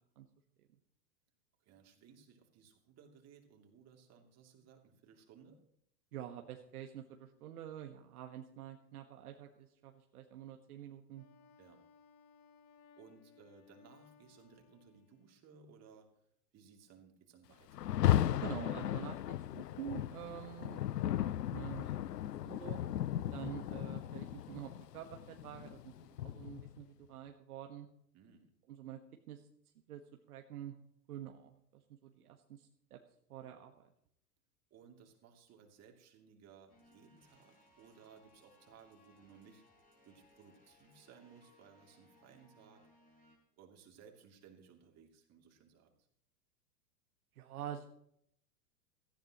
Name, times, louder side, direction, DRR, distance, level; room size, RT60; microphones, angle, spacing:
voice 1, 1.6-5.6 11.6-11.8 13.0-16.1 16.5-17.9 23.3-23.5 28.1-28.5 34.7-39.6 40.0-42.9 43.6-45.9, right 6 dB, 30° right, 2 dB, 3.0 m, -61 dB
voice 2, 6.1-11.2 18.4-20.8 21.1-22.0 22.4-22.8 23.3-25.9 26.2-27.9 28.7-29.0 29.3-29.4 29.9-30.0 30.3-30.7 31.1-33.0 33.3-33.8 47.3-47.8, right 11 dB, 60° right, 3 dB, 1.5 m, -47 dB
Wind instrument woodwind instrument, 11.1-15.5, left 6 dB, 35° left, 1.3 m, -64 dB
Rain, 17.7-26.8, left 12 dB, 75° left, 0.6 m, -36 dB
sound 1, 36.7-43.4, left 2 dB, 15° left, 5.1 m, -67 dB
17.5 x 15.0 x 3.1 m, 0.70 s
figure-of-eight pair, 100°, 49 cm